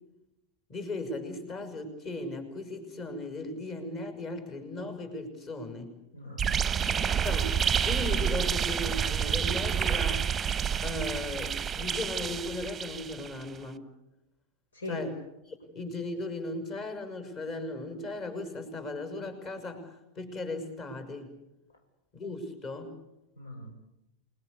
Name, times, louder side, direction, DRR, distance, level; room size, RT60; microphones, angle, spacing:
voice 1, 0.7-5.9 7.2-7.6 7.8-10.4 10.8-13.8 14.9-15.2 15.5-21.3 22.1-22.9, left 2 dB, 30° left, 7 dB, 6.5 m, -37 dB
voice 2, 6.1-7.2 14.7-15.0 23.4-23.7, left 1 dB, 70° left, 6 dB, 5.3 m, -41 dB
sound 1, 6.4-13.4, right 8 dB, 20° right, 1.0 m, -29 dB
29.0 x 21.0 x 8.3 m, 0.90 s
figure-of-eight pair, 90°, 0 cm